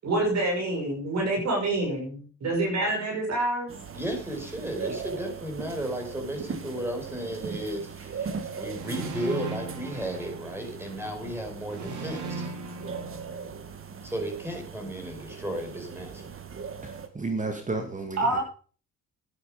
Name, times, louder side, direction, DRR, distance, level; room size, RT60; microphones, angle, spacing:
voice 1, 0.0-3.7 18.2-18.4, right 2 dB, 60° right, 0 dB, 6.1 m, -27 dB
sound 1, 3.7-17.1, right 6 dB, 45° right, 1.8 m, -39 dB
voice 2, 3.9-12.5 14.0-16.3, right 1 dB, 10° right, 3 dB, 5.3 m, -34 dB
sound 2, 8.7-10.9 11.7-13.9, right 3 dB, 75° right, 3.8 m, -38 dB
voice 3, 16.8-18.4, right 3 dB, 25° right, 4 dB, 2.1 m, -32 dB
11.5 x 10.5 x 5.2 m, 0.41 s
cardioid pair, 90°, 30 cm